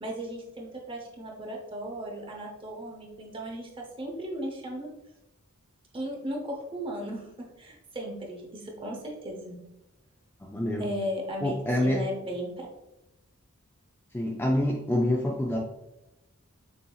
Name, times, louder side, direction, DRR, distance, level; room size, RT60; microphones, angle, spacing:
voice 1, 0.0-4.9 5.9-9.6 10.8-11.6 11.8-12.7, equal, 25° right, 0 dB, 0.7 m, -36 dB
voice 2, 10.4-10.9 11.4-12.0 14.1-15.6, left 1 dB, 10° left, -1 dB, 0.3 m, -26 dB
6.9 x 2.7 x 2.3 m, 0.92 s
head